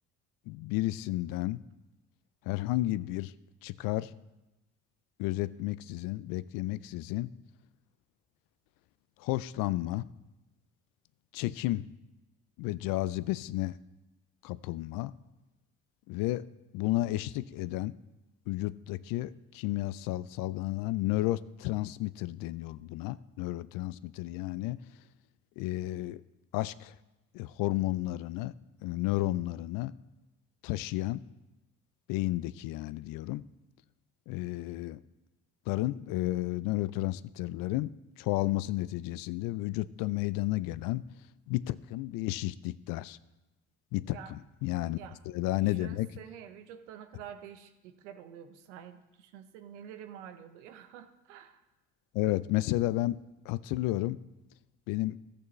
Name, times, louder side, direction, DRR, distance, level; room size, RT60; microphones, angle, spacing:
voice 1, 0.5-1.6 2.5-3.3 3.6-4.1 5.2-7.3 9.2-10.1 11.3-11.9 12.6-13.7 14.4-15.1 16.1-16.4 16.7-17.9 18.5-24.8 25.6-26.2 26.5-26.9 27.3-28.5 28.8-29.9 30.6-31.2 32.1-33.4 34.3-35.0 35.7-37.9 38.2-41.0 41.5-43.2 43.9-44.2 44.6-45.0 45.3-46.1 52.1-53.2 53.5-54.2 54.9-55.2, left 17 dB, 70° left, 18 dB, 0.5 m, -32 dB
voice 2, 44.8-51.6, right 9 dB, 90° right, 9 dB, 0.8 m, -48 dB
14.0 x 8.4 x 3.2 m, 1.0 s
hypercardioid pair, 55°, 35 cm